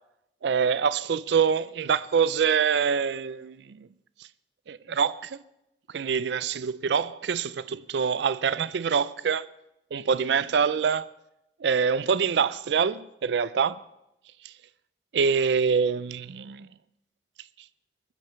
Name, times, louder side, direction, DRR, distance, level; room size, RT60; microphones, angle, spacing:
voice 1, 0.4-3.9 4.7-5.4 5.9-9.5 9.9-11.1 11.6-13.8 14.4-14.5 15.1-16.7, right 6 dB, 75° right, 0.4 m, -25 dB
22.5 x 7.6 x 5.7 m
head